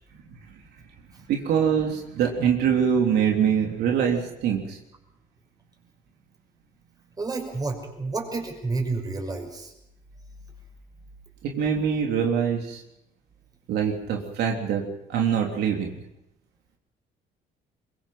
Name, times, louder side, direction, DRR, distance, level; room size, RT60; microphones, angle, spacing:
voice 1, 1.3-4.8 11.4-12.8 13.7-15.9, right 7 dB, 75° right, 1 dB, 3.4 m, -24 dB
voice 2, 7.2-9.7, right 3 dB, 20° right, 3 dB, 5.9 m, -30 dB
24.0 x 22.5 x 5.9 m, 0.84 s
cardioid pair, 110°, 17 cm